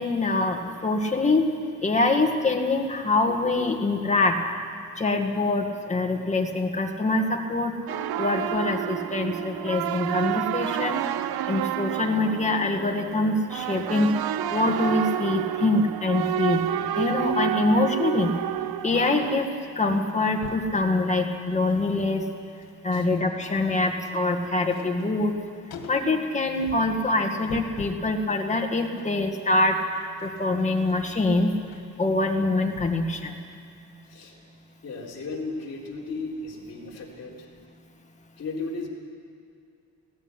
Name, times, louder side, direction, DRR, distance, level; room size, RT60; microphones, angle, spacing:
voice 1, 0.0-1.5 1.8-4.4 5.0-7.7 8.2-11.0 11.5-14.1 14.5-16.7 16.9-18.3 18.8-19.5 19.8-22.2 22.8-25.3 25.9-31.5 32.0-33.4, left 2 dB, 20° left, 2 dB, 1.8 m, -24 dB
sound 1, 7.9-19.4, right 11 dB, 85° right, 0.7 m, -29 dB
sound 2, 17.0-19.1 19.4-19.6 19.9-20.7 21.3-21.9 22.2-28.1 28.5-33.2 33.5-33.6, left 6 dB, 85° left, 2.3 m, -46 dB
voice 2, 34.0-34.4 34.8-37.5 38.4-38.9, left 3 dB, 45° left, -4 dB, 3.9 m, -35 dB
19.5 x 15.0 x 9.8 m, 2.4 s
wide cardioid pair, 170°, 36 cm